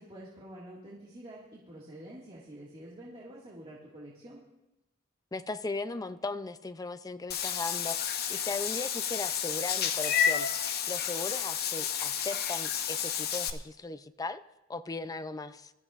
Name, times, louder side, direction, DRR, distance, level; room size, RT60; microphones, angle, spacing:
voice 1, 0.0-4.4, right 1 dB, 30° right, -5 dB, 1.9 m, -47 dB
voice 2, 5.3-14.4 14.7-15.7, left 3 dB, 20° left, 10 dB, 0.4 m, -38 dB
Meow / Water / Bathtub (filling or washing), 7.3-13.5, left 8 dB, 50° left, 0.7 m, -31 dB
21.0 x 13.5 x 2.5 m, 0.92 s
head